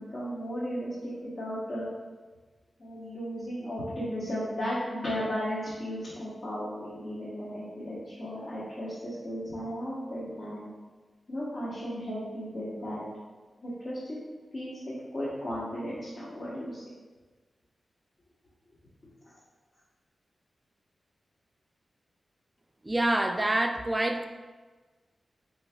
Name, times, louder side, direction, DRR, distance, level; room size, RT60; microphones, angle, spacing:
voice 1, 0.0-1.8 2.8-10.7 11.3-13.0 13.6-14.2 14.5-16.8 19.2-19.3, equal, 60° left, -10 dB, 1.1 m, -35 dB
voice 2, 22.8-24.3, right 1 dB, 25° right, 5 dB, 0.3 m, -26 dB
4.5 x 3.1 x 2.3 m, 1.3 s
cardioid pair, 45°, 0 cm